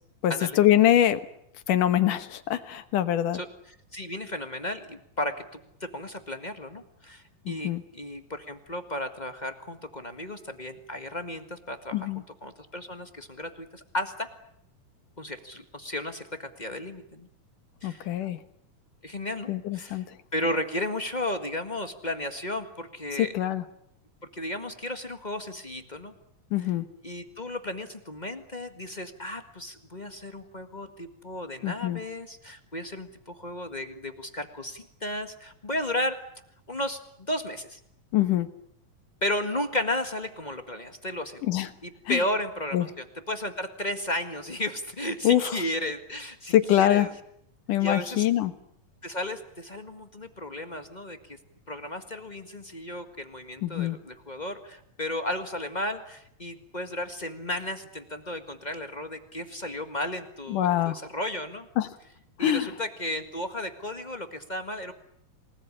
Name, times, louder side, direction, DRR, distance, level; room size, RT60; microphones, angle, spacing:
voice 1, 0.2-1.2 1.7-3.4 7.5-7.8 11.9-12.2 17.8-18.4 19.5-20.0 23.2-23.6 26.5-26.9 31.6-32.0 38.1-38.5 41.5-41.7 42.1-42.2 42.7-42.9 45.2-45.5 46.5-47.1 47.7-48.5 53.6-54.0 60.5-61.0 61.8-61.9 62.4-62.7, left 12 dB, 70° left, 11 dB, 2.8 m, -24 dB
voice 2, 3.3-12.1 12.4-14.3 15.2-17.3 17.8-18.1 19.0-20.0 20.3-23.4 24.3-26.1 27.0-36.2 36.7-37.0 37.3-37.8 39.2-41.6 41.8-47.1 47.8-48.3 49.0-51.4 51.7-61.7 62.4-64.9, left 1 dB, 35° left, 7 dB, 0.6 m, -34 dB
28.5 x 20.0 x 9.9 m, 0.72 s
omnidirectional pair, 4.0 m